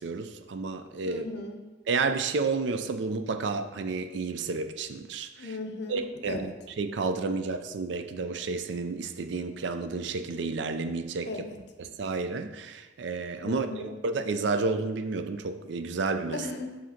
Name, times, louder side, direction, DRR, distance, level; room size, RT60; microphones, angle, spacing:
voice 1, 0.0-1.3 1.9-5.5 5.9-6.5 6.8-11.3 11.8-16.4, right 4 dB, 65° right, 8 dB, 0.4 m, -31 dB
voice 2, 1.1-1.7 5.4-6.5 11.2-11.6 13.4-13.9 16.3-16.8, left 3 dB, 60° left, 5 dB, 0.6 m, -37 dB
7.5 x 2.8 x 5.7 m, 1.2 s
head